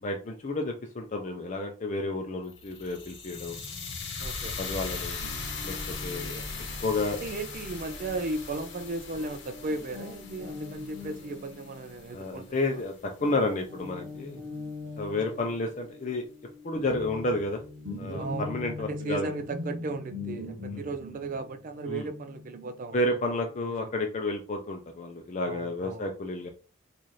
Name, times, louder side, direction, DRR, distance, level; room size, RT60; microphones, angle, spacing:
voice 1, 0.0-3.6 4.6-5.2 5.6-5.8 6.0-6.3 6.8-7.2 11.0-11.1 12.1-14.4 15.0-16.2 16.6-17.6 18.0-19.3 20.7-20.8 21.9-22.1 22.9-26.5, left 2 dB, 35° left, 0.4 m, -31 dB
sound 1, 2.5-12.6, left 4 dB, 55° left, 0.9 m, -39 dB
voice 2, 4.2-4.6 6.1-6.5 7.2-12.8 18.2-18.5 18.9-23.0 23.2-23.4 23.8-23.9 25.4-26.1, right 2 dB, 40° right, 0.3 m, -36 dB
Guitar, 5.2-12.9 13.2-23.6, left 2 dB, 65° right, 0.8 m, -42 dB
4.0 x 2.5 x 3.1 m
head